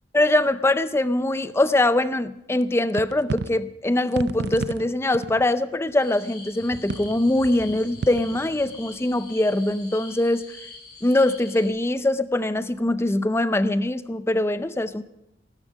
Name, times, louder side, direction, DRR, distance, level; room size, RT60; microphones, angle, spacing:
voice 1, 0.1-10.4 11.0-15.0, left 1 dB, 15° left, 13 dB, 0.5 m, -22 dB
sound 1, 2.6-2.7 2.9-3.6 4.1-5.4 5.9-6.0 6.9-7.2 8.0-8.4, right 4 dB, 65° right, 0.4 m, -31 dB
sound 2, 6.0-11.7, left 3 dB, 55° left, 4.8 m, -44 dB
sound 3, 6.5-12.0 12.4-12.6 13.1-13.2, right 1 dB, 90° right, 1.2 m, -48 dB
14.5 x 13.0 x 5.1 m, 0.85 s
head